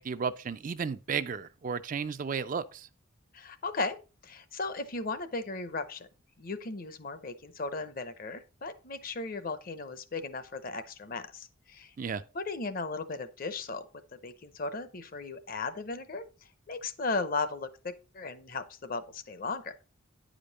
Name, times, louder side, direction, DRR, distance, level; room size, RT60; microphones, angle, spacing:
voice 1, 0.0-2.9 12.0-12.2, right 6 dB, 40° right, 0.3 m, -33 dB
voice 2, 3.3-4.0 4.2-6.1 6.4-11.9 12.3-13.8 14.2-16.2 16.7-19.7, left 3 dB, 45° left, 0.7 m, -36 dB
9.4 x 5.1 x 4.0 m
head